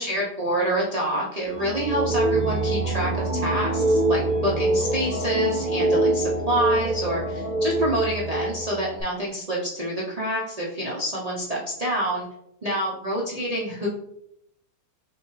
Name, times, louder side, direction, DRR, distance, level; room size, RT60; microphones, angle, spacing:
voice 1, 0.0-12.2 12.6-13.9, right 1 dB, 65° right, -5 dB, 0.3 m, -27 dB
sound 1, 1.5-9.0, right 1 dB, 5° right, 0.5 m, -25 dB
5.9 x 2.3 x 3.1 m, 0.77 s
omnidirectional pair, 1.8 m